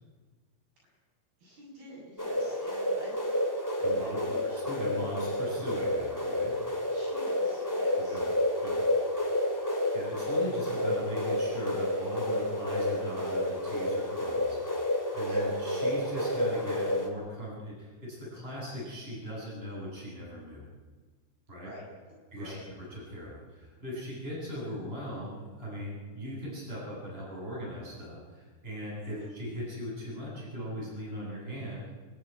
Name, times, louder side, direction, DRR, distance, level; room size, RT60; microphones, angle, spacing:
voice 1, 1.4-3.3 3.8-4.6 6.9-8.3 15.3-15.5 21.6-21.8 22.4-22.6 29.0-29.3, left 1 dB, 50° right, -4 dB, 8.6 m, -48 dB
sound 1, 2.2-17.1, left 1 dB, 10° left, 1.2 m, -30 dB
voice 2, 3.8-4.2 4.5-6.6 8.1-8.3 8.6-8.8 9.9-20.6 21.5-21.7 22.3-22.5 22.9-31.9, equal, 10° right, -5 dB, 8.0 m, -39 dB
28.0 x 12.5 x 9.8 m, 1.4 s
omnidirectional pair, 5.7 m